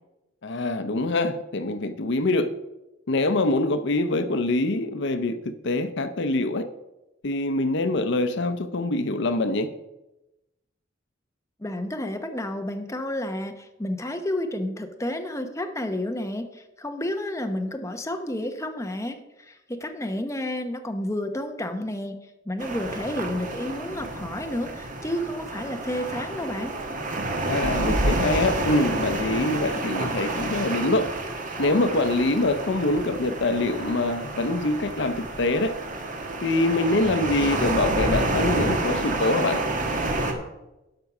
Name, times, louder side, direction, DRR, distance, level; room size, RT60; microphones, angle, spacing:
voice 1, 0.4-2.5 3.1-6.7 7.2-9.7 27.4-31.1 31.6-35.7 36.4-39.6, left 2 dB, 65° left, 0.7 m, -24 dB
voice 2, 11.6-22.2 22.5-26.7, left 1 dB, 15° left, 0.9 m, -31 dB
sound 1, 22.6-40.3, right 2 dB, 45° right, 1.4 m, -29 dB
12.0 x 5.4 x 5.9 m
head